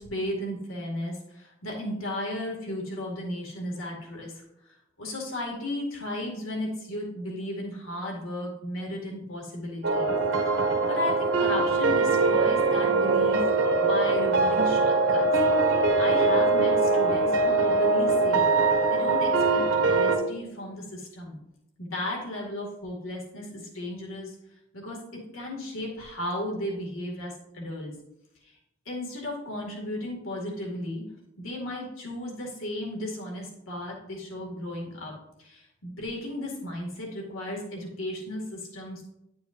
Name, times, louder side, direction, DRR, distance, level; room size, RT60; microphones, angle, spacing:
voice 1, 0.0-10.1 10.5-13.4 13.8-15.3 16.0-18.4 18.9-21.4 21.8-24.4 24.7-27.9 28.4-28.5 28.9-31.0 31.4-39.1, left 1 dB, 85° left, -2 dB, 2.2 m, -35 dB
sound 1, 9.8-20.2, right 3 dB, 70° right, 1.7 m, -22 dB
10.5 x 6.8 x 2.6 m, 0.88 s
head